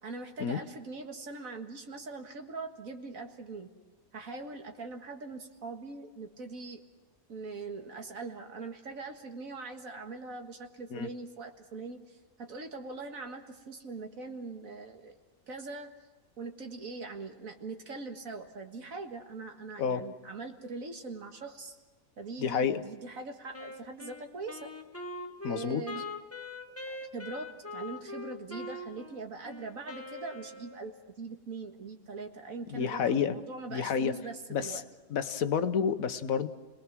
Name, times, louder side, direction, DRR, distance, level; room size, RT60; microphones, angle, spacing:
voice 1, 0.0-3.7 4.1-6.8 7.3-15.2 15.5-15.9 16.4-21.8 22.2-24.7 25.5-26.1 26.9-34.8, right 3 dB, 65° right, 4 dB, 2.1 m, -42 dB
voice 2, 22.4-22.8 25.4-25.8 32.7-33.4 33.7-34.2 34.5-34.8 35.1-36.5, left 7 dB, 70° left, 10 dB, 1.4 m, -29 dB
Wind instrument woodwind instrument, 23.5-31.0, left 2 dB, 10° left, 1.4 m, -42 dB
30.0 x 20.0 x 6.0 m, 1.2 s
omnidirectional pair, 1.5 m